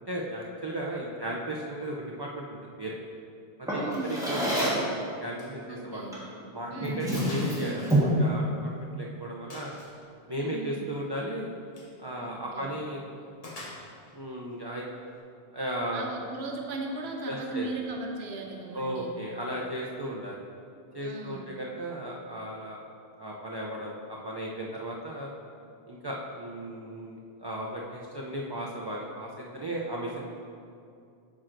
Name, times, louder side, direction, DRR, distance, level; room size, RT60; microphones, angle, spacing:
voice 1, 0.1-3.0 3.6-6.1 6.5-9.8 10.3-11.5 12.0-13.3 14.1-14.8 15.5-16.1 17.2-17.7 18.7-20.4 20.9-22.8 23.2-25.3 25.9-30.2, right 1 dB, 35° right, -3 dB, 0.4 m, -35 dB
Drawer open or close, 3.7-4.9 6.1-6.3 6.8-8.2, right 1 dB, 5° right, 1.3 m, -27 dB
voice 2, 3.7-4.2 5.7-6.2 6.7-7.1 10.3-10.9 12.2-12.7 15.9-19.1 21.0-21.5, right 3 dB, 75° right, 0 dB, 1.0 m, -37 dB
Gunshot gunfire, 5.4-5.6 5.9-6.0 6.5-6.6 7.2-7.5 7.9-8.8 9.5-10.0 11.6-12.0 13.4-14.2, left 1 dB, 40° left, 1.0 m, -44 dB
8.6 x 6.1 x 2.6 m, 2.5 s
omnidirectional pair, 1.1 m